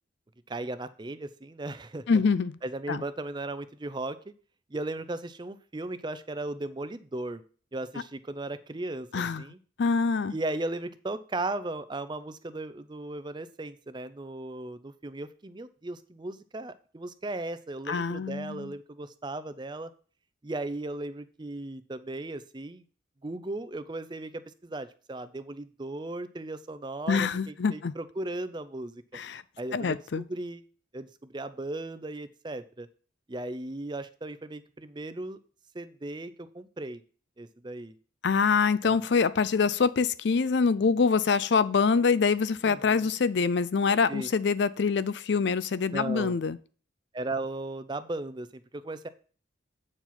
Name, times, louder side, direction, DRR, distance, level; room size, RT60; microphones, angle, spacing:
voice 1, 0.5-2.0 2.6-4.2 4.7-7.4 7.7-9.6 10.3-19.9 20.4-22.8 23.2-29.2 29.6-30.6 30.9-32.9 33.3-35.4 35.7-37.0 37.4-37.9 38.8-39.0 42.6-43.1 44.1-44.3 45.9-46.4 47.1-49.1, right 2 dB, 25° right, 0.5 m, -36 dB
voice 2, 2.1-2.6 2.9-3.0 9.1-9.4 9.8-10.3 17.9-18.7 27.1-27.9 29.1-29.4 29.7-30.2 38.2-46.6, left 5 dB, 60° left, 0.4 m, -25 dB
8.7 x 4.7 x 5.8 m
head